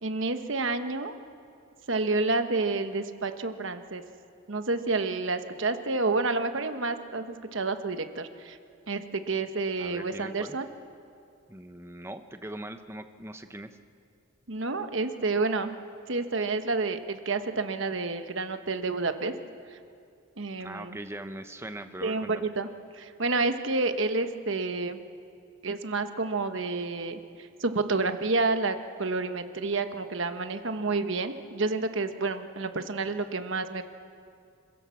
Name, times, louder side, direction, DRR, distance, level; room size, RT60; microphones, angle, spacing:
voice 1, 0.0-1.1 1.9-4.0 4.5-8.6 8.9-10.7 14.5-15.7 16.1-19.3 19.7-19.8 20.4-21.0 22.0-22.7 22.9-25.0 25.6-33.8, right 3 dB, 60° right, 8 dB, 1.2 m, -29 dB
voice 2, 9.8-10.6 11.5-13.8 20.6-22.5, right 1 dB, 10° right, 8 dB, 0.8 m, -41 dB
26.5 x 16.0 x 7.1 m, 2.4 s
head